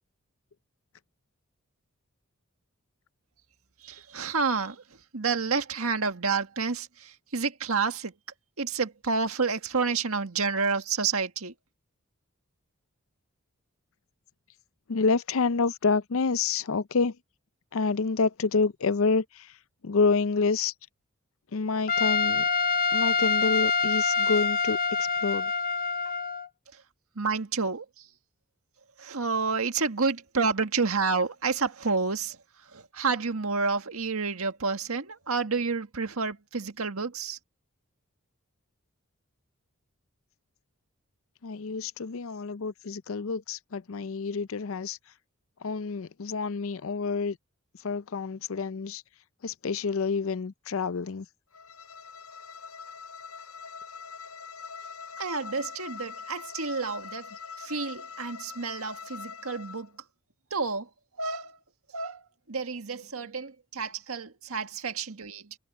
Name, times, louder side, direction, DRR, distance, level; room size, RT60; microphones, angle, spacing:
voice 1, 3.8-4.8 5.1-8.1 8.6-11.5 26.7-26.8 27.1-28.1 29.0-37.4 55.2-57.3 57.6-59.9 60.5-60.9 61.2-61.6 61.9-62.2 62.5-65.6, right 4 dB, 85° right, 1.7 m, -29 dB
voice 2, 14.9-17.2 17.7-19.5 19.8-20.7 21.5-22.5 22.9-24.8 25.2-25.5 41.4-45.0 45.6-47.4 47.8-49.0 49.4-51.3, left 4 dB, 70° left, 0.5 m, -28 dB
Trumpet, 21.9-26.5, left 4 dB, 40° left, 1.1 m, -26 dB
Bowed string instrument, 51.5-59.9, left 5 dB, 90° left, 6.3 m, -43 dB
head